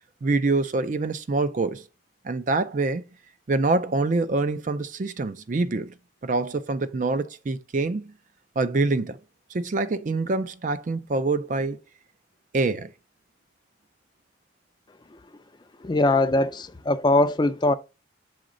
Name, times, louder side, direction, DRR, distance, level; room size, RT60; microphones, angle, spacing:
voice 1, 0.2-1.8 2.2-3.1 3.5-5.9 6.2-8.1 8.6-9.2 9.5-11.8 12.5-12.9, right 3 dB, 40° right, 0.4 m, -25 dB
voice 2, 15.8-17.7, left 2 dB, 20° left, 0.4 m, -21 dB
6.3 x 4.0 x 3.8 m
head